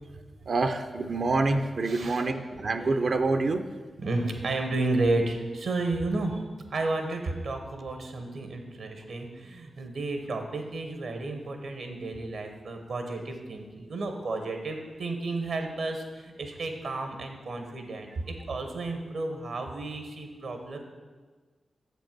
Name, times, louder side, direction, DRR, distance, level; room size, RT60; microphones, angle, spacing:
voice 1, 0.5-3.6, right 3 dB, 60° right, 7 dB, 0.5 m, -26 dB
voice 2, 1.8-2.9 4.0-20.8, right 2 dB, 80° right, 5 dB, 1.0 m, -32 dB
6.7 x 5.3 x 6.0 m, 1.4 s
cardioid pair, 45°, 0 cm